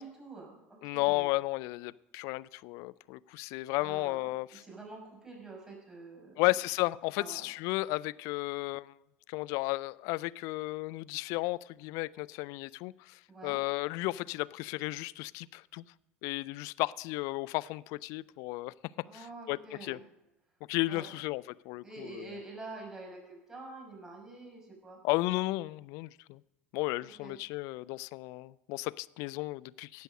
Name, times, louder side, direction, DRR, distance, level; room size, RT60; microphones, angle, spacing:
voice 1, 0.0-1.3 3.7-6.5 7.1-7.5 13.3-13.6 19.0-20.0 20.9-21.1 21.8-25.0 27.0-27.4, right 3 dB, 10° right, -1 dB, 6.0 m, -47 dB
voice 2, 0.8-4.6 6.4-8.9 9.3-15.8 16.2-18.7 19.1-20.0 20.7-22.3 25.0-26.4 26.7-30.0, left 21 dB, 60° left, 18 dB, 0.4 m, -34 dB
16.5 x 6.3 x 6.4 m, 0.95 s
figure-of-eight pair, 65°, 6 cm